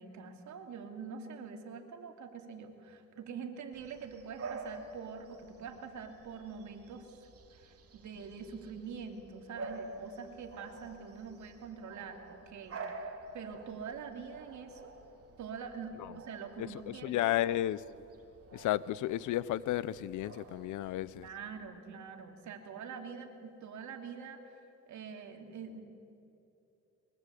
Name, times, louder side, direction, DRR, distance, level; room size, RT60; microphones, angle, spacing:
voice 1, 0.0-12.8 13.3-15.0 15.4-17.4 21.1-25.8, right 6 dB, 70° right, 2.9 m, -45 dB
Bark / Bird vocalization bird call bird song, 3.7-21.3, right 3 dB, 50° right, 2.8 m, -49 dB
voice 2, 16.6-17.8 18.5-21.3, left 13 dB, 80° left, 0.8 m, -33 dB
23.0 x 22.0 x 8.5 m
cardioid pair, 90°, 30 cm